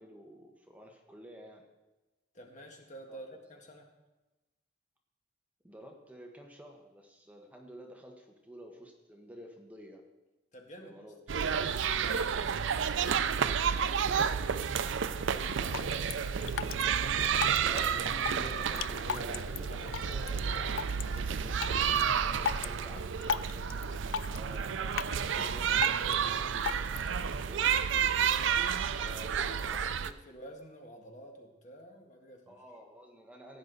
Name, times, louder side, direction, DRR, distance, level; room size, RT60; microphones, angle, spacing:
voice 1, 0.0-1.6 3.1-3.2 5.6-10.0 10.8-11.2 17.6-20.6 21.1-28.2 28.9-29.9 32.5-33.6, equal, 10° right, 1 dB, 1.2 m, -50 dB
voice 2, 2.3-3.9 10.5-10.9 11.3-16.1 29.6-32.6, equal, 40° left, 2 dB, 1.7 m, -51 dB
sound 1, 11.3-30.1, right 7 dB, 70° right, 0.4 m, -30 dB
Drip, 15.4-27.4, left 8 dB, 75° left, 0.3 m, -40 dB
16.0 x 9.7 x 4.0 m, 1.0 s
head